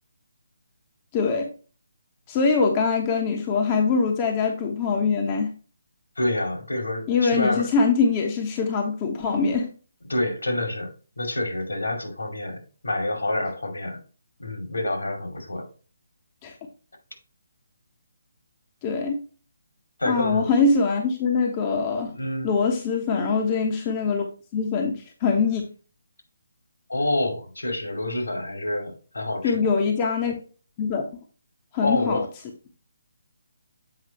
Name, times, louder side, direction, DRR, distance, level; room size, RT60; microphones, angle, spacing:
voice 1, 1.1-1.5 2.3-5.5 7.1-9.7 16.4-16.6 18.8-19.2 20.1-22.1 22.4-24.2 24.5-25.6 29.4-30.4 30.8-31.0 31.7-32.3, left 4 dB, 25° left, 1.1 m, -23 dB
voice 2, 6.2-7.7 10.1-14.0 14.4-15.7 20.0-20.5 22.1-22.5 26.9-29.7 31.8-32.2, left 1 dB, 70° left, 2.5 m, -27 dB
7.9 x 4.9 x 3.0 m
figure-of-eight pair, 145°, 0 cm